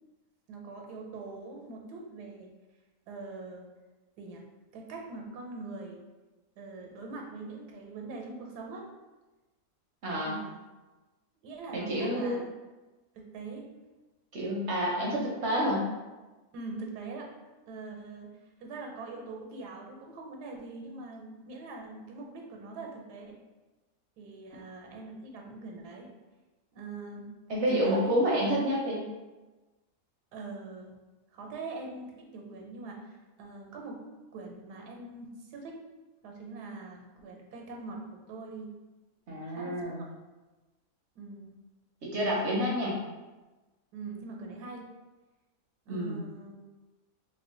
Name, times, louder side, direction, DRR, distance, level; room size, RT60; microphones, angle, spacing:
voice 1, 0.5-2.5 3.1-3.7 4.2-4.4 4.7-6.0 6.6-8.9 10.2-10.5 11.4-12.4 13.1-13.7 14.9-15.1 16.5-17.3 17.7-23.4 24.2-26.1 26.7-27.3 27.7-28.1 30.3-31.0 31.3-34.0 34.3-35.8 36.2-38.7 39.5-40.2 41.1-41.5 43.9-44.9 45.9-46.5, right 3 dB, 85° right, 1 dB, 1.2 m, -42 dB
voice 2, 10.0-10.3 11.7-12.4 14.3-15.9 27.5-29.0 39.3-40.0 42.0-43.0 45.9-46.2, equal, 60° right, -3 dB, 0.7 m, -29 dB
2.9 x 2.2 x 3.6 m, 1.2 s
omnidirectional pair, 1.7 m